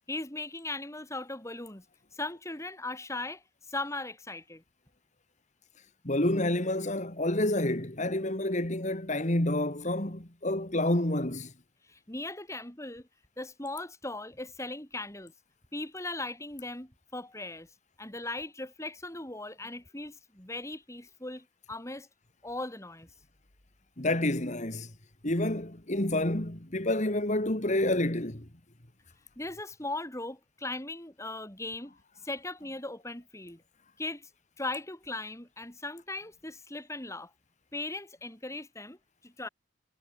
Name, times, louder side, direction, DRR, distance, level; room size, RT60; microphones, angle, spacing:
voice 1, 0.1-1.8 2.1-4.6 11.9-13.1 13.4-15.3 15.7-17.7 18.0-22.1 22.4-23.1 29.4-32.0 32.2-33.6 34.0-34.3 34.6-37.3 37.7-39.0 39.2-39.5, left 2 dB, 15° left, 2.8 m, -38 dB
voice 2, 6.0-11.5 24.0-24.9 25.2-28.5, left 1 dB, 35° left, 2.4 m, -29 dB
head